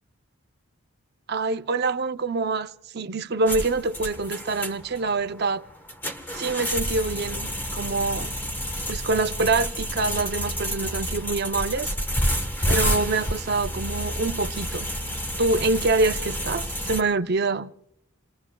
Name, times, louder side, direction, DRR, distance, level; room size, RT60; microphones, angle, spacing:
voice 1, 1.3-5.6 6.3-8.3 8.9-11.9 12.7-14.9 15.4-17.7, right 3 dB, 50° right, 0.6 m, -25 dB
sound 1, 3.5-17.0, equal, 10° left, 1.1 m, -29 dB
28.5 x 20.5 x 2.3 m
head